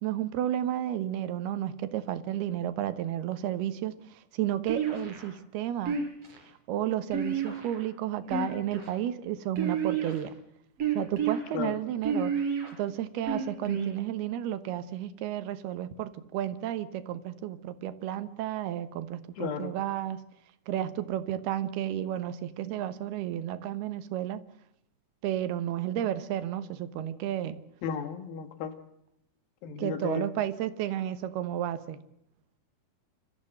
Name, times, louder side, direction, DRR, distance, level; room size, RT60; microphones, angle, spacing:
voice 1, 0.0-6.0 6.7-10.3 10.9-12.3 12.7-20.2 20.7-24.4 25.2-27.6 29.8-32.0, right 11 dB, 90° right, 12 dB, 3.1 m, -32 dB
sound 1, 4.7-5.3 5.9-6.4 7.1-7.8 8.2-8.9 9.6-10.3 10.8-11.4 12.0-12.7 13.3-13.9, right 6 dB, 40° right, 5.0 m, -30 dB
voice 2, 19.4-19.7 27.8-28.7 29.6-30.3, left 7 dB, 70° left, 9 dB, 3.2 m, -34 dB
29.5 x 14.5 x 7.8 m, 0.81 s
omnidirectional pair, 4.4 m